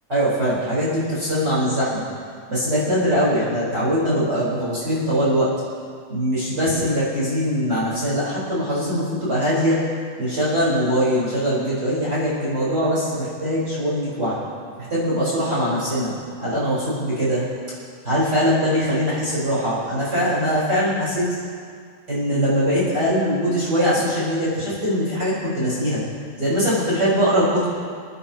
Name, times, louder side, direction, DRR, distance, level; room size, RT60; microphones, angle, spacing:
voice 1, 0.1-2.0 2.5-5.5 6.1-9.8 10.2-14.4 14.9-16.1 16.4-17.4 18.0-21.4 22.1-26.0 26.4-27.7, equal, 25° right, -10 dB, 4.4 m, -22 dB
27.0 x 10.5 x 2.9 m, 2.1 s
omnidirectional pair, 4.8 m